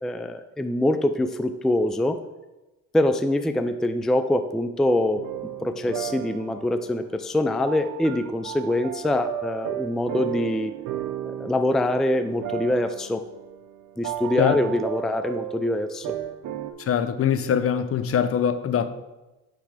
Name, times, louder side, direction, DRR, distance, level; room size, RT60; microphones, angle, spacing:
voice 1, 0.0-2.2 2.9-5.2 5.6-10.7 11.3-13.2 14.0-16.1, left 1 dB, ahead, 0.4 m, -24 dB
sound 1, 5.2-16.7, right 11 dB, 80° right, 0.8 m, -35 dB
voice 2, 16.8-18.9, left 8 dB, 50° left, 0.6 m, -23 dB
9.4 x 3.4 x 4.9 m
cardioid pair, 90°, 30 cm